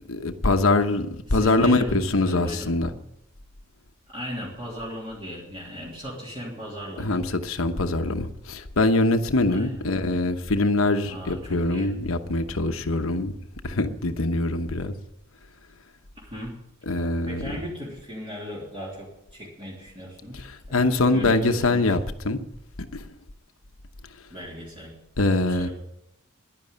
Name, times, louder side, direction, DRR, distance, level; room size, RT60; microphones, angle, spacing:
voice 1, 0.1-2.9 7.0-13.3 13.6-14.9 16.9-17.6 20.3-22.0 22.2-22.4 22.9-23.1 25.2-25.7, left 2 dB, 75° left, 7 dB, 1.0 m, -23 dB
voice 2, 1.3-2.7 4.1-7.2 9.5-9.8 11.0-11.9 16.2-16.5 17.2-21.9 24.3-24.9 25.4-25.7, equal, 25° right, -5 dB, 3.3 m, -37 dB
11.0 x 11.0 x 8.8 m, 0.85 s
head